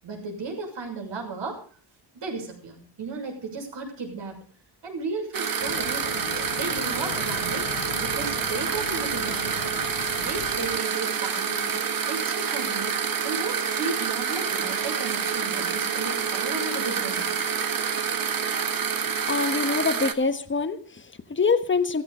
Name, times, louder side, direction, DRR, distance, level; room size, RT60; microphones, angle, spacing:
voice 1, 0.0-1.6 2.1-4.4 4.8-6.2 6.6-7.7 8.0-9.7 10.2-17.4, right 3 dB, 60° right, 2 dB, 6.6 m, -35 dB
sound 1, 5.3-20.1, right 7 dB, 45° right, 1.6 m, -27 dB
sound 2, 5.6-10.8, left 13 dB, 85° left, 0.9 m, -38 dB
sound 3, 10.0-15.4, right 6 dB, 85° right, 3.8 m, -48 dB
voice 2, 19.3-22.0, left 4 dB, 25° left, 10 dB, 1.3 m, -25 dB
16.0 x 15.5 x 5.1 m, 0.41 s
wide cardioid pair, 170°, 47 cm